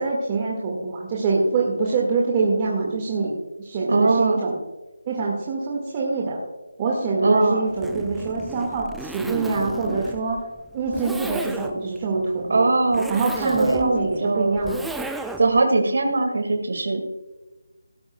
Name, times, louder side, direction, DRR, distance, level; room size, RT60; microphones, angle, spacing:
voice 1, 0.0-4.6 5.1-6.4 6.8-10.4 10.7-12.7 13.1-14.9, right 3 dB, 25° right, -3 dB, 1.8 m, -25 dB
voice 2, 3.9-4.4 7.2-7.6 12.5-13.1 13.4-13.9 14.2-14.6 15.4-17.0, right 3 dB, 60° right, 4 dB, 2.0 m, -20 dB
Zipper (clothing), 7.7-15.6, right 2 dB, ahead, 0.4 m, -35 dB
17.5 x 12.0 x 2.3 m, 1.1 s
figure-of-eight pair, 165°, 0 cm